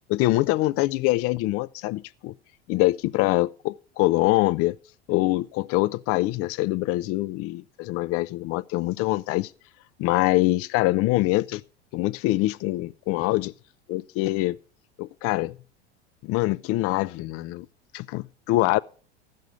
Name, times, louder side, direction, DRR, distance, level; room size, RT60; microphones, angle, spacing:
voice 1, 0.1-2.3 2.7-4.7 5.1-9.5 10.0-11.6 11.9-13.5 13.9-14.6 15.0-15.5 16.2-17.7 17.9-18.8, left 18 dB, 45° left, 0.6 m, -24 dB
14.5 x 6.6 x 6.8 m
hypercardioid pair, 90°, 32 cm